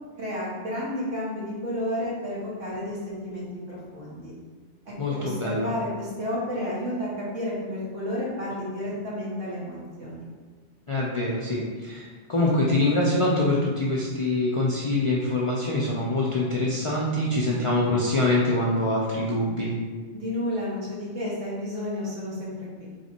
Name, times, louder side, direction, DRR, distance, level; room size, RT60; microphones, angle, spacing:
voice 1, 0.2-4.3 4.9-10.3 20.1-22.7, left 1 dB, 90° right, -6 dB, 1.6 m, -31 dB
voice 2, 5.0-5.7 10.9-19.7, left 2 dB, 55° left, -4 dB, 0.3 m, -24 dB
3.3 x 3.2 x 4.2 m, 1.5 s
omnidirectional pair, 1.2 m